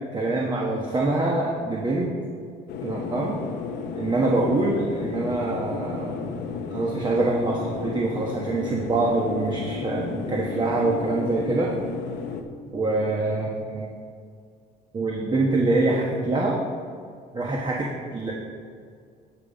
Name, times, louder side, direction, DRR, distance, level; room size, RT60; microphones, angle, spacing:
voice 1, 0.1-2.1 2.8-3.4 3.9-6.3 6.7-11.7 12.7-13.9 14.9-16.6 17.3-18.3, right 2 dB, 25° right, -2 dB, 1.2 m, -25 dB
sound 1, 2.7-12.4, left 5 dB, 85° left, 0.9 m, -33 dB
12.5 x 5.6 x 5.1 m, 2.1 s
cardioid pair, 110°, 17 cm